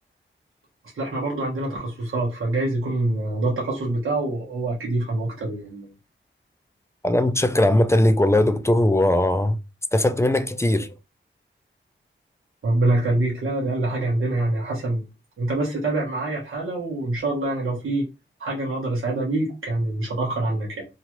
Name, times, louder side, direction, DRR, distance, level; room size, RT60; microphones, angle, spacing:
voice 1, 0.9-5.9 12.6-15.0 15.4-18.0 18.4-20.9, right 2 dB, 85° right, 1.0 m, -25 dB
voice 2, 7.0-9.6 9.9-10.9, left 1 dB, 15° left, 0.3 m, -19 dB
2.9 x 2.4 x 2.9 m
wide cardioid pair, 95°, 20 cm